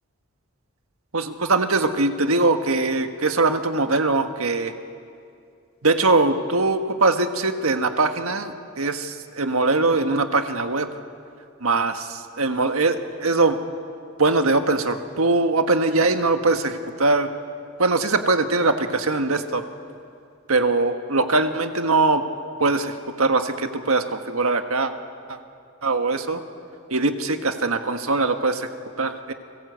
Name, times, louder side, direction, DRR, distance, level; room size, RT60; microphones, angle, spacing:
voice 1, 1.1-4.7 5.8-10.9 11.6-13.6 14.2-17.3 17.8-19.6 20.5-22.2 22.6-24.9 25.3-25.4 25.8-26.4 26.9-28.7 29.0-29.3, right 3 dB, 85° right, 7 dB, 1.6 m, -21 dB
29.5 x 21.0 x 8.2 m, 2.4 s
head